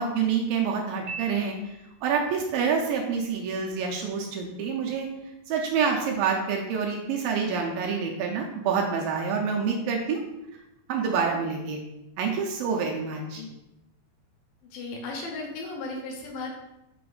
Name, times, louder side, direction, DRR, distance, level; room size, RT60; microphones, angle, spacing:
voice 1, 0.0-5.1 5.5-10.2 10.9-11.8 12.2-13.4, right 6 dB, 80° right, 1 dB, 2.2 m, -27 dB
Piano, 1.1-2.2, right 4 dB, 65° right, 1.4 m, -40 dB
voice 2, 14.7-16.6, left 3 dB, 75° left, 0 dB, 2.2 m, -35 dB
5.8 x 4.2 x 3.9 m, 0.91 s
omnidirectional pair, 4.5 m